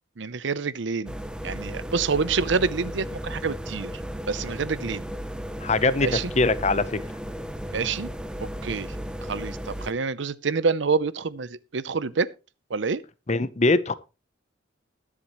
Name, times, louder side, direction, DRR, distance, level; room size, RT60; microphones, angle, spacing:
voice 1, 0.2-1.1 1.4-3.9 4.3-5.0 6.0-6.3 7.7-8.1 8.6-8.9 9.3-12.3 12.7-13.0, right 5 dB, 70° right, 0.6 m, -27 dB
sound 1, 1.1-9.9, equal, 5° right, 0.7 m, -35 dB
voice 2, 5.6-6.1 6.4-7.0 13.3-13.9, left 3 dB, 35° left, 0.7 m, -22 dB
20.5 x 7.4 x 3.0 m
head